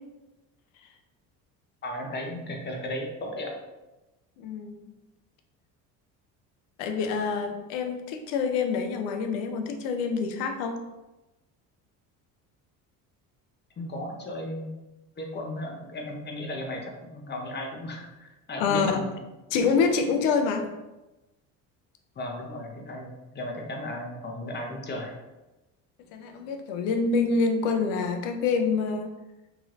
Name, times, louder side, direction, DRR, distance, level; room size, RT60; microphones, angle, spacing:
voice 1, 1.8-3.6 13.8-14.7 15.2-19.0 22.2-25.2, left 1 dB, 30° left, 1 dB, 0.6 m, -35 dB
voice 2, 4.4-4.9 6.8-10.8 18.6-19.1 19.5-20.7 26.1-29.1, left 5 dB, 90° left, 5 dB, 0.5 m, -26 dB
3.0 x 2.8 x 2.4 m, 1.0 s
supercardioid pair, 95°, 37 cm